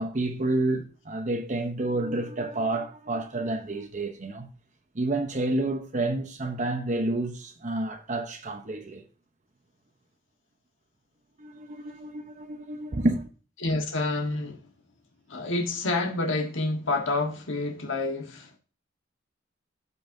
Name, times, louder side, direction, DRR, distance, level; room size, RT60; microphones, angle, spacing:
voice 1, 0.0-4.5 4.9-9.0 11.4-13.3, right 2 dB, 40° right, 0.9 m, -29 dB
voice 2, 13.6-14.6 15.3-18.6, left 2 dB, 75° left, 1.4 m, -28 dB
14.0 x 5.5 x 2.7 m
head